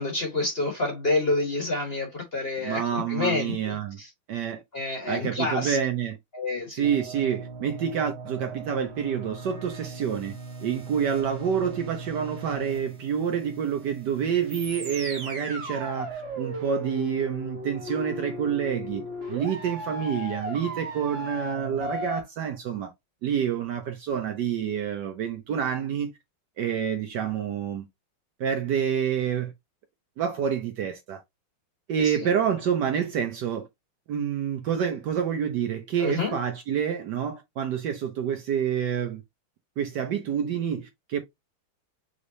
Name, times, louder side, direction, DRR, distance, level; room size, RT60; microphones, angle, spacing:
voice 1, 0.0-4.1 4.7-5.8 6.3-6.9 36.0-36.3, left 2 dB, 35° left, 1.2 m, -28 dB
voice 2, 2.6-4.0 4.3-4.6 5.1-6.2 6.7-10.3 10.6-22.9 23.2-26.1 26.6-27.8 28.4-29.5 30.2-31.2 31.9-33.7 34.1-39.2 39.8-41.2, right 8 dB, 65° right, 1.2 m, -28 dB
sound 1, 6.8-22.2, right 1 dB, 40° right, 1.1 m, -37 dB
5.1 x 3.3 x 2.7 m
omnidirectional pair, 2.3 m